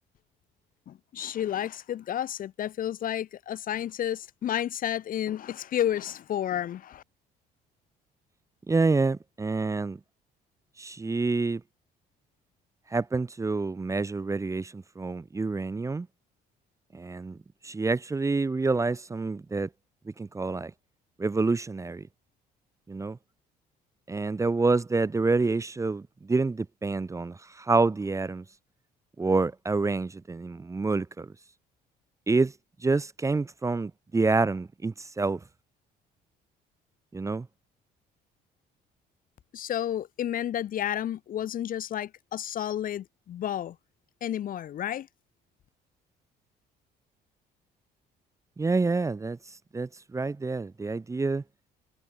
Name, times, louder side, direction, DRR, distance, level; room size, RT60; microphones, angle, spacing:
voice 1, 0.9-7.0 39.5-43.8 44.2-45.1, left 11 dB, 55° left, 1.6 m, -31 dB
voice 2, 8.7-10.0 10.8-11.6 12.9-16.1 16.9-17.4 17.6-19.7 20.2-20.7 21.2-22.1 22.9-23.2 24.1-28.4 29.2-31.3 32.3-32.5 32.8-35.4 37.1-37.5 48.6-49.4 49.7-51.4, right 3 dB, 20° right, 1.1 m, -27 dB
cardioid pair, 110°, 17 cm